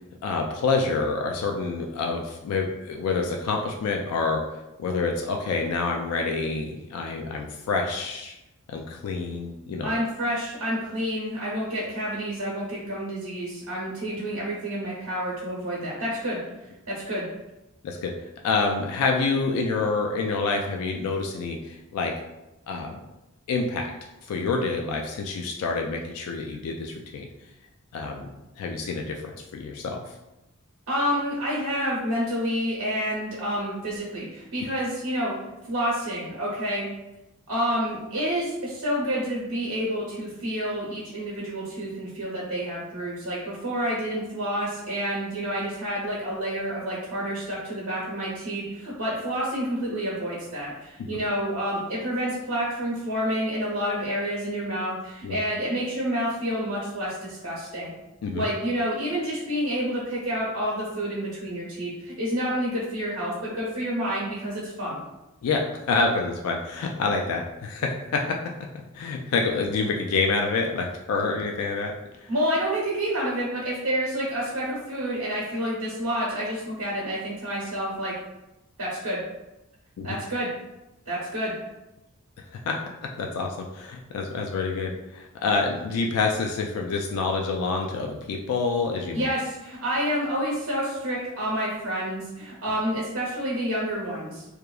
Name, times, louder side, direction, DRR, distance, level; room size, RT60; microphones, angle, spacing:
voice 1, 0.2-4.4 4.8-8.3 8.7-9.9 17.8-18.1 18.4-22.1 22.7-23.0 23.5-23.9 24.3-27.3 27.9-28.3 28.6-29.2 29.5-30.0 51.0-51.1 55.2-55.4 58.2-58.4 65.4-65.6 65.9-68.2 68.9-71.9 72.2-72.3 80.0-80.1 82.7-82.8 83.2-89.2, left 4 dB, 85° left, 2 dB, 0.3 m, -27 dB
voice 2, 9.8-16.4 16.9-17.2 30.9-35.3 35.7-36.9 37.5-57.9 58.3-65.0 72.3-78.1 78.8-79.2 80.0-80.5 81.1-81.5 89.1-94.5, equal, 85° right, -6 dB, 0.7 m, -29 dB
2.9 x 2.3 x 2.2 m, 0.96 s
head